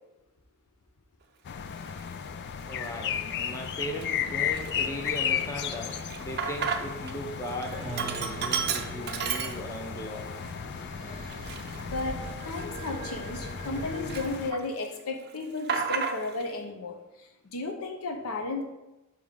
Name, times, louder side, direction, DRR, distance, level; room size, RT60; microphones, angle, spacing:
sound 1, 1.4-14.5, left 8 dB, 50° left, 0.4 m, -35 dB
Sink (filling or washing), 1.9-2.0 2.7-3.2 3.6-3.7 4.0-7.1 7.4-10.0 10.4-10.5 11.2-13.8 14.1-14.9 15.1-16.5, right 6 dB, 50° right, 0.5 m, -33 dB
voice 1, 2.7-10.3, equal, 15° left, 1 dB, 0.7 m, -38 dB
sound 2, 4.3-14.3, right 2 dB, 25° right, 0.8 m, -43 dB
voice 2, 11.9-17.0 17.5-18.6, left 3 dB, 75° left, 3 dB, 0.9 m, -34 dB
6.5 x 3.1 x 5.1 m, 1.0 s
head